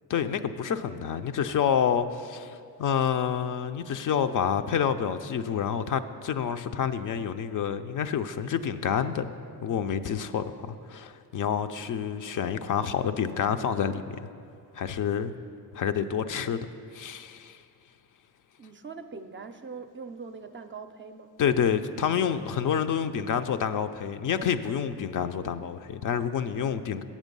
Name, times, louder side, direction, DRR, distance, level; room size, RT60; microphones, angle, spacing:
voice 1, 0.1-9.3 9.6-14.2 14.7-15.3 15.7-16.6 16.9-17.6 21.4-27.0, left 8 dB, 55° left, 10 dB, 0.5 m, -28 dB
voice 2, 18.6-21.4, right 5 dB, 30° right, 8 dB, 0.5 m, -42 dB
7.5 x 7.3 x 5.3 m, 2.3 s
cardioid pair, 65°, 39 cm